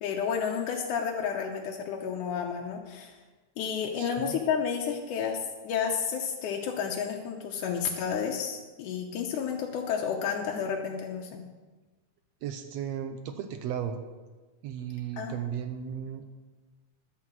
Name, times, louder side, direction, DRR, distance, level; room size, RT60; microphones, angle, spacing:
voice 1, 0.0-3.2 3.6-11.4 15.2-15.3, left 7 dB, 80° left, 0 dB, 2.3 m, -31 dB
voice 2, 4.0-4.4 12.4-14.0 14.6-16.2, right 9 dB, 70° right, 7 dB, 1.6 m, -35 dB
11.0 x 5.8 x 7.5 m, 1.2 s
omnidirectional pair, 3.6 m